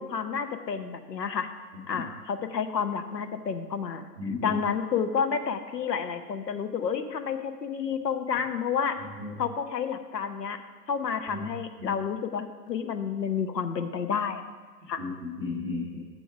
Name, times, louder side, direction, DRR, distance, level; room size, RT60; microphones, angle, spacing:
voice 1, 0.0-1.5 1.9-4.0 4.4-9.0 9.4-10.6 10.9-14.4 14.9-15.0, left 6 dB, 80° left, 9 dB, 0.9 m, -30 dB
voice 2, 4.2-4.6 9.2-9.3 11.3-11.5 11.8-12.0 15.0-16.0, left 3 dB, ahead, -27 dB, 0.4 m, -34 dB
7.0 x 4.7 x 5.8 m, 1.4 s
hypercardioid pair, 135°, 49 cm